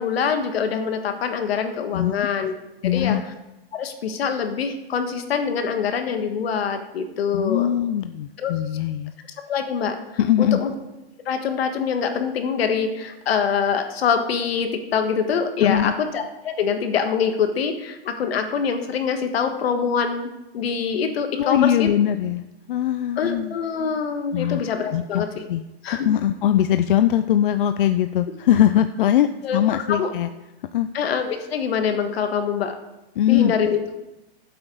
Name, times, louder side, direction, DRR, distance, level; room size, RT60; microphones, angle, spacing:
voice 1, 0.0-2.5 2.8-3.2 3.7-7.7 8.4-8.5 9.5-10.0 10.4-10.7 11.2-21.9 23.2-25.3 25.8-26.1 29.4-29.6 29.9-30.1 30.9-32.7 33.3-33.8, left 6 dB, 75° left, 6 dB, 1.5 m, -24 dB
voice 2, 1.9-2.3 2.8-3.2 7.3-9.1 10.2-10.6 15.6-15.9 21.4-23.6 24.3-25.2 25.5-25.7 26.0-30.3 30.7-30.9 33.2-33.5, left 11 dB, 55° left, 10 dB, 0.5 m, -21 dB
13.0 x 7.9 x 3.9 m, 0.97 s
supercardioid pair, 165°, 31 cm